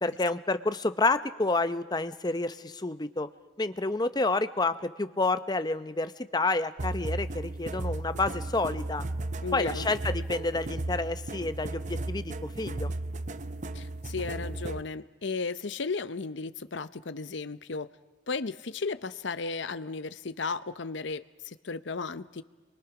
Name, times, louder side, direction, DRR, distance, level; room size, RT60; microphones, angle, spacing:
voice 1, 0.0-3.3 3.6-9.0 9.5-12.9, left 2 dB, 20° left, 12 dB, 0.7 m, -29 dB
sound 1, 6.8-14.8, right 2 dB, 40° right, 0.7 m, -35 dB
voice 2, 9.4-9.9 13.7-17.9 18.3-22.4, left 4 dB, 65° left, 13 dB, 0.8 m, -35 dB
29.5 x 23.5 x 6.0 m, 1.3 s
head